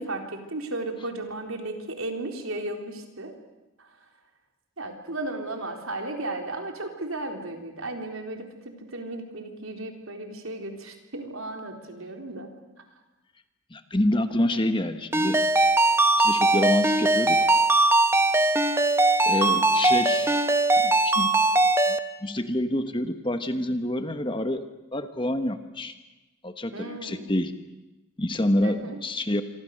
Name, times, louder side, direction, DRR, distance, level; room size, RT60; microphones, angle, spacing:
voice 1, 0.0-3.3 3.8-3.9 4.8-12.5 14.5-14.6 26.7-27.2 28.6-29.0, right 2 dB, 75° right, 3 dB, 3.9 m, -35 dB
voice 2, 13.7-15.4 16.2-17.4 19.3-20.4 20.8-21.3 22.2-24.6 24.9-25.9 26.4-27.5 28.2-29.4, left 1 dB, 25° left, 9 dB, 1.3 m, -27 dB
Ringtone, 15.1-22.0, right 2 dB, 10° right, 0.9 m, -20 dB
27.0 x 24.5 x 6.6 m, 1.1 s
head